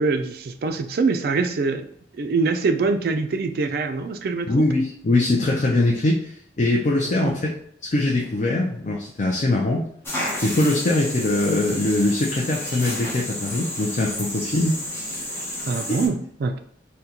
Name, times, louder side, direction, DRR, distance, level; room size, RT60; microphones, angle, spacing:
voice 1, 0.0-1.9 2.2-4.7 7.2-7.3 15.7-16.6, right 4 dB, 55° right, 7 dB, 0.3 m, -24 dB
voice 2, 4.5-7.3 7.8-9.9 10.4-14.8 15.9-16.0, left 2 dB, 40° left, -1 dB, 0.4 m, -22 dB
sound 1, 10.0-16.1, left 1 dB, 10° left, 0.7 m, -31 dB
3.6 x 2.2 x 2.8 m, 0.69 s
head